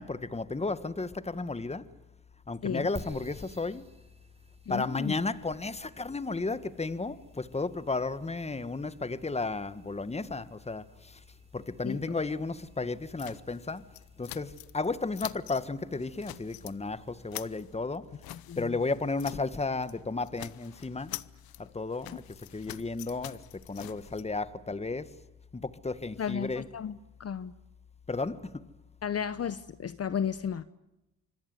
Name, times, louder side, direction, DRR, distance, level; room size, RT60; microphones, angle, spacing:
voice 1, 0.0-1.9 2.5-3.8 4.7-11.2 11.5-13.8 14.2-18.1 18.6-21.2 21.6-22.2 22.5-25.2 25.5-26.7 28.1-28.7, left 3 dB, 15° left, 1.5 m, -33 dB
sound 1, 3.0-17.7, right 1 dB, 15° right, 5.3 m, -55 dB
voice 2, 4.7-5.1 11.8-12.0 18.3-18.8 26.2-27.5 29.0-30.6, left 7 dB, 40° left, 1.0 m, -34 dB
sound 2, 13.2-14.9 15.1-15.7 16.0-16.8 17.1-19.6 19.8-20.0 20.2-24.2, left 16 dB, 75° left, 0.9 m, -45 dB
26.0 x 21.5 x 9.6 m
supercardioid pair, 65°, 36 cm